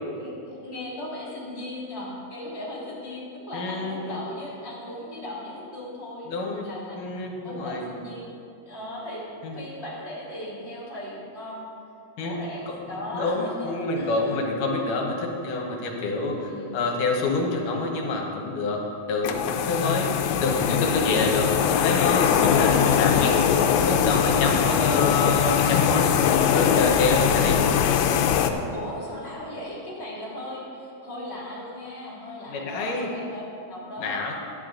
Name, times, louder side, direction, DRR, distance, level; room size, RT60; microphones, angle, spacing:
voice 1, 0.1-6.3 6.6-7.1 7.4-8.4 8.7-11.6 12.2-14.4 16.3-16.7 22.5-23.3 28.7-34.2, left 1 dB, 20° left, -6 dB, 2.5 m, -37 dB
voice 2, 3.5-4.2 6.3-6.7 7.0-7.8 9.4-9.6 12.2-12.4 12.7-12.8 13.1-18.8 19.1-19.4 19.7-20.1 20.4-21.5 21.8-23.5 23.8-27.7 32.5-33.1 34.0-34.3, left 3 dB, 65° left, 0 dB, 2.5 m, -27 dB
sound 1, 19.2-28.5, left 8 dB, 85° left, 2.5 m, -21 dB
11.5 x 10.5 x 3.8 m, 2.5 s
omnidirectional pair, 4.3 m